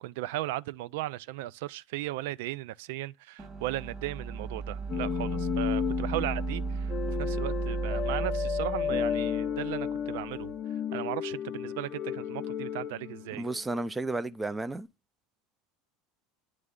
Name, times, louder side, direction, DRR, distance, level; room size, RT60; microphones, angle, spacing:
voice 1, 0.0-10.5 10.9-13.5, right 16 dB, 75° right, 0.3 m, -36 dB
sound 1, 3.4-10.5, right 5 dB, 35° right, 1.8 m, -35 dB
sound 2, 4.9-13.9, left 8 dB, 40° left, 0.6 m, -33 dB
voice 2, 13.4-14.9, right 2 dB, 15° right, 0.5 m, -32 dB
9.4 x 3.2 x 3.7 m
hypercardioid pair, 95°, 0 cm